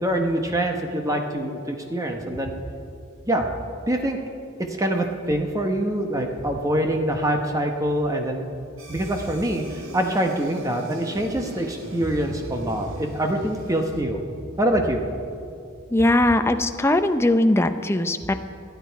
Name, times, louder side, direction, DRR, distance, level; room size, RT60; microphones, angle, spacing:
voice 1, 0.0-2.6 3.3-3.5 3.9-4.2 4.7-8.5 8.9-14.2 14.6-15.0, right 1 dB, 15° right, 3 dB, 1.0 m, -25 dB
sound 1, 8.8-14.0, right 1 dB, 80° right, 1.8 m, -42 dB
voice 2, 15.9-18.3, left 1 dB, 10° left, 8 dB, 0.5 m, -20 dB
25.0 x 9.3 x 4.6 m, 2.5 s
head